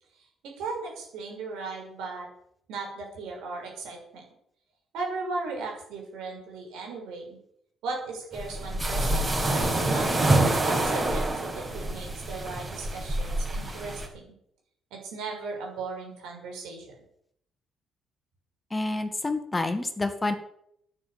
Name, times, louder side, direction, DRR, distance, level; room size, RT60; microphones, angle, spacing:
voice 1, 0.6-2.3 2.7-4.2 4.9-7.4 7.8-14.2 14.9-16.9, right 3 dB, 80° right, 0 dB, 6.3 m, -37 dB
sound 1, 8.3-14.1, right 1 dB, 30° right, 5.2 m, -26 dB
voice 2, 18.7-20.3, left 2 dB, 20° left, 8 dB, 2.0 m, -28 dB
11.0 x 10.0 x 8.8 m, 0.72 s
cardioid pair, 80°, 0 cm